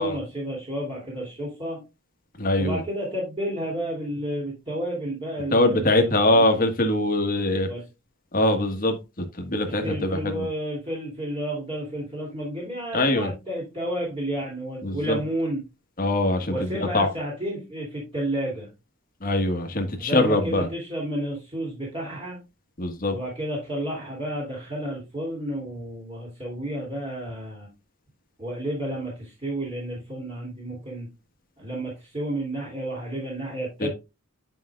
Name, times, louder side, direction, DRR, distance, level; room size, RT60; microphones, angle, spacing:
voice 1, 0.0-1.8 2.6-6.4 7.7-7.8 9.7-15.6 16.5-18.7 20.0-22.4 23.1-27.7 28.4-31.1 31.6-33.9, right 1 dB, 25° right, -6 dB, 2.9 m, -31 dB
voice 2, 2.4-2.8 5.5-7.7 8.3-10.5 12.9-13.3 14.8-15.2 16.0-17.1 19.2-20.7 22.8-23.1 33.8-33.9, left 1 dB, 40° left, 5 dB, 1.4 m, -23 dB
9.9 x 5.2 x 2.4 m, 0.26 s
head